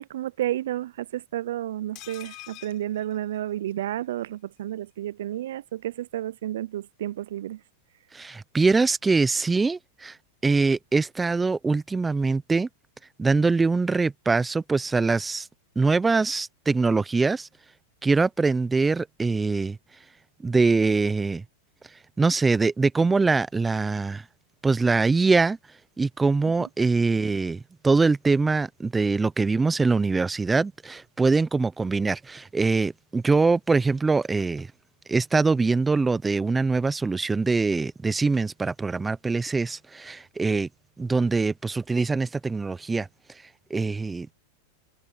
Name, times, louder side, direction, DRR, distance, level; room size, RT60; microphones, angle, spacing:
voice 1, 0.0-7.6, right 13 dB, 75° right, 0.4 m, -31 dB
sound 1, 2.0-3.9 4.2-4.3 4.6-4.7, left 21 dB, 45° left, 6.5 m, -46 dB
voice 2, 8.1-10.2 10.4-12.7 13.2-15.5 15.8-17.5 18.0-19.8 20.4-21.4 22.2-24.2 24.6-25.6 26.0-34.7 35.1-40.7 41.0-43.1 43.7-44.3, right 4 dB, 10° right, 0.6 m, -23 dB
hypercardioid pair, 120°, 0 cm